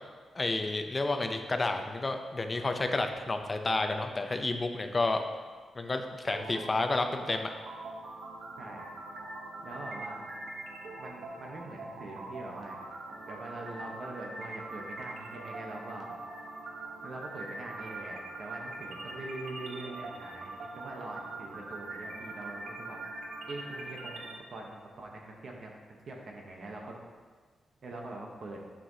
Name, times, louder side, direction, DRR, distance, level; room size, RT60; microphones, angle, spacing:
voice 1, 0.3-5.3 5.8-7.5, left 2 dB, 25° left, 6 dB, 0.5 m, -30 dB
sound 1, 6.3-24.3, right 2 dB, 75° right, 1.0 m, -43 dB
voice 2, 9.6-10.2 11.0-12.8 13.3-16.1 17.0-23.0 23.5-27.0 27.8-28.6, right 2 dB, 50° right, 0 dB, 0.9 m, -43 dB
8.9 x 5.7 x 2.7 m, 1.5 s
wide cardioid pair, 155°, 0 cm